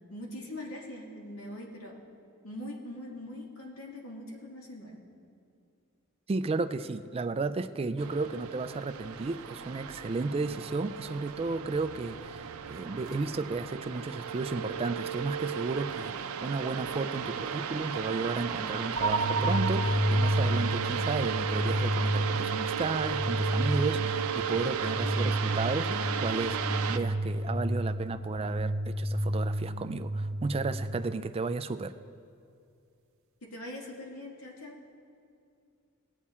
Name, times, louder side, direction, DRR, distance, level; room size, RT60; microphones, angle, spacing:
voice 1, 0.1-1.9 2.4-5.0 33.4-34.8, left 1 dB, 75° left, -1 dB, 2.0 m, -42 dB
voice 2, 6.3-26.6 26.9-31.9, right 3 dB, 25° right, 10 dB, 0.4 m, -33 dB
sound 1, 8.0-27.0, right 7 dB, 85° right, 0.6 m, -35 dB
sound 2, 19.0-30.9, right 1 dB, 65° right, 0.9 m, -30 dB
19.0 x 8.3 x 4.3 m, 2.5 s
head